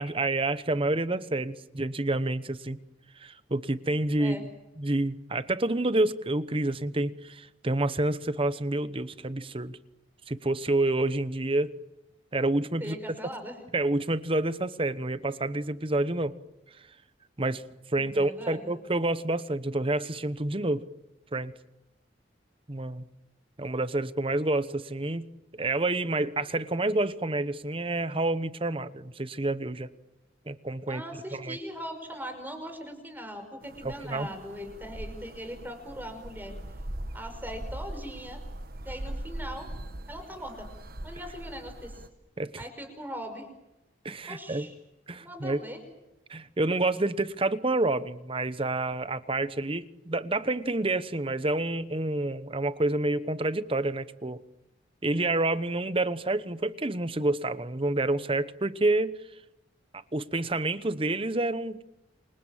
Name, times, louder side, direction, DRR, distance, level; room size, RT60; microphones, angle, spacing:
voice 1, 0.0-2.8 3.2-4.5 4.8-9.8 10.3-11.7 12.3-12.9 13.7-16.3 17.4-20.8 21.3-21.5 22.7-23.0 23.6-25.3 25.5-29.9 30.5-31.0 31.4-31.6 33.8-34.3 42.4-42.6 44.0-44.7 45.1-45.6 46.3-54.4 55.0-59.2 60.1-61.8, right 2 dB, 30° right, 14 dB, 1.0 m, -28 dB
voice 2, 12.8-13.6 17.9-18.7 30.9-36.6 37.1-38.4 38.8-39.7 40.1-40.7 41.0-42.0 42.6-43.5 44.3-44.7 45.2-45.8, equal, 10° right, 7 dB, 5.4 m, -40 dB
sound 1, 33.6-42.1, right 1 dB, 50° right, 1.5 m, -41 dB
28.5 x 25.5 x 7.4 m, 0.93 s
head